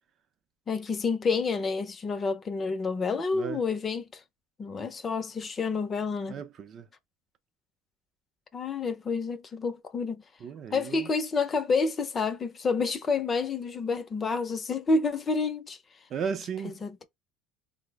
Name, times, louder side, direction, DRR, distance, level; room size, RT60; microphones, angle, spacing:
voice 1, 0.7-4.0 4.6-6.4 8.5-10.2 10.7-15.8 16.6-17.0, left 4 dB, 30° left, 0.5 m, -29 dB
voice 2, 6.3-6.9 10.4-11.1 16.1-16.8, right 6 dB, 45° right, 0.5 m, -35 dB
3.9 x 2.0 x 3.3 m
supercardioid pair, 115°, 0 cm